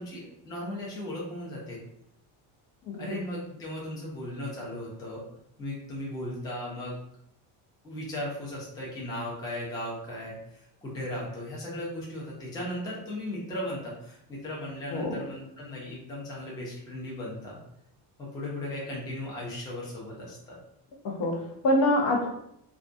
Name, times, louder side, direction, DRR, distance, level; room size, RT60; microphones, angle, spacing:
voice 1, 0.0-1.8 3.0-5.2 5.6-7.0 7.8-17.6 18.2-20.6, left 1 dB, 10° left, -5 dB, 0.4 m, -37 dB
voice 2, 2.8-3.2 14.9-15.2 21.0-22.3, left 1 dB, 65° left, 1 dB, 0.7 m, -26 dB
2.4 x 2.2 x 2.5 m, 0.76 s
cardioid pair, 155°, 45 cm